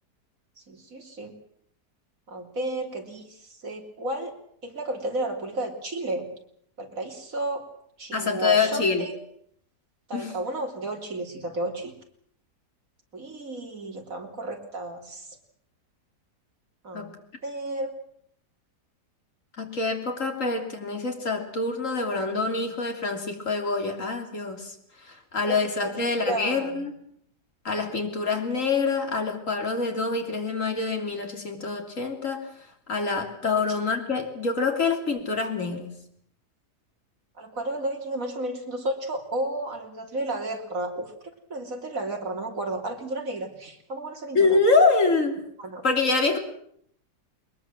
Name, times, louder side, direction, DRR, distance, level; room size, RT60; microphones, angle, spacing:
voice 1, 0.7-1.4 2.3-4.4 4.6-6.3 6.8-7.6 8.0-9.2 10.1-11.9 13.1-15.4 16.8-17.2 17.4-17.9 25.4-26.8 33.7-33.8 37.4-44.6 45.6-45.8, right 1 dB, 50° right, 3 dB, 3.6 m, -32 dB
voice 2, 8.1-9.1 10.1-10.4 16.9-17.2 19.6-24.7 25.1-26.9 27.7-32.5 32.9-36.0 44.4-45.4 45.8-46.4, left 4 dB, 50° left, 4 dB, 3.5 m, -25 dB
22.0 x 21.0 x 7.6 m, 0.68 s
omnidirectional pair, 1.8 m